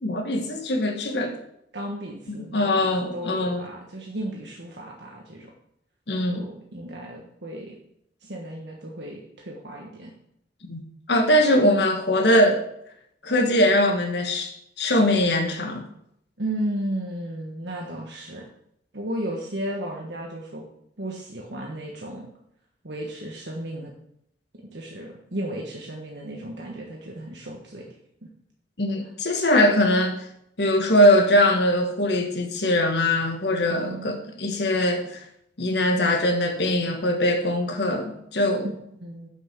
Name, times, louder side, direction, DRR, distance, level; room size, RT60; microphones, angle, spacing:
voice 1, 0.0-1.4 2.5-3.7 6.1-6.4 10.7-12.6 13.2-14.5 14.8-15.9 28.8-30.3 30.6-35.2 35.6-38.7, left 1 dB, 60° left, 4 dB, 1.4 m, -21 dB
voice 2, 1.7-5.5 6.3-7.8 8.2-10.1 16.4-18.5 18.9-20.6 21.0-22.3 22.8-23.9 24.5-27.9 28.2-28.3 29.0-29.1 33.7-34.2 38.6-39.3, right 1 dB, 65° right, -1 dB, 1.5 m, -34 dB
9.1 x 6.0 x 6.7 m, 0.75 s
head